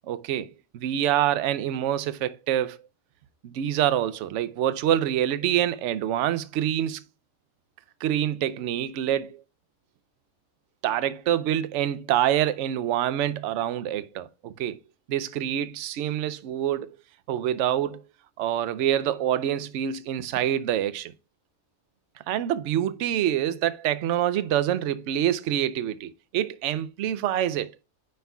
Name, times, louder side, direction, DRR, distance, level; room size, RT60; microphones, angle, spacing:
voice 1, 0.1-2.8 3.4-7.0 8.0-9.4 10.8-14.8 15.1-17.0 17.3-18.0 18.4-21.1 22.3-27.7, right 11 dB, 65° right, 0.8 m, -26 dB
9.3 x 5.4 x 2.3 m
omnidirectional pair, 1.4 m